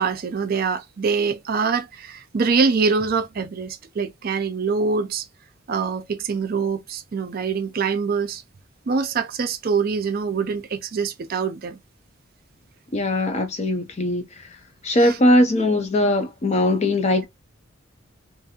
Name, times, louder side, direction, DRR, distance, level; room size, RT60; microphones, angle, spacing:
voice 1, 0.0-5.3 5.7-8.4 8.9-11.8 15.0-15.2, right 5 dB, 45° right, 0.4 m, -24 dB
voice 2, 12.9-14.2 14.8-17.3, left 1 dB, 30° left, 0.5 m, -20 dB
2.8 x 2.6 x 2.3 m
head